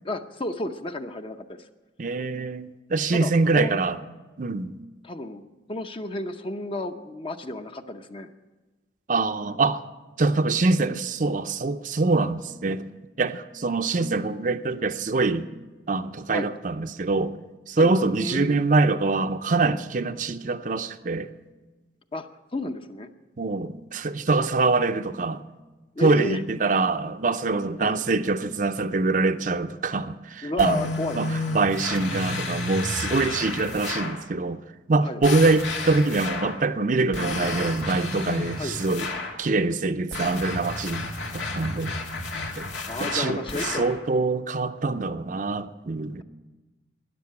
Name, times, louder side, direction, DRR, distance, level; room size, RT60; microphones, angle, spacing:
voice 1, 0.0-1.7 3.1-3.8 5.0-5.4 5.7-8.3 16.3-16.5 17.8-17.9 18.2-18.6 22.1-23.1 26.0-26.4 27.8-28.0 30.4-31.2 33.1-33.2 35.0-35.2 38.6-38.8 42.9-43.8, left 1 dB, 30° left, 0.7 m, -32 dB
voice 2, 2.0-4.0 4.4-4.7 9.1-9.8 10.2-12.8 13.2-15.5 15.9-17.3 17.7-21.3 23.4-25.4 26.0-30.9 31.2-34.6 34.9-39.1 39.4-41.1 41.3-41.9 42.6-42.7 43.0-46.2, right 3 dB, 45° right, 0.6 m, -24 dB
sound 1, 30.6-34.2 35.2-36.6 37.1-39.4 40.1-44.0, left 3 dB, 90° left, 2.0 m, -31 dB
13.0 x 10.0 x 8.8 m
head